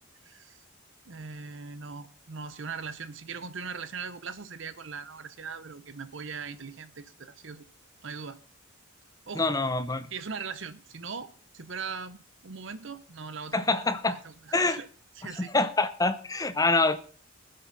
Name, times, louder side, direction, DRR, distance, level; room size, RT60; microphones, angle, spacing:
voice 1, 0.2-0.6 1.1-7.6 8.0-8.4 9.3-9.6 10.1-11.3 11.5-13.6 14.1-14.9 15.2-15.5, right 5 dB, 60° right, 0.8 m, -40 dB
voice 2, 9.4-10.1 13.5-14.2 14.5-14.8 15.4-17.0, left 3 dB, 15° left, 0.7 m, -25 dB
19.0 x 7.8 x 4.1 m
head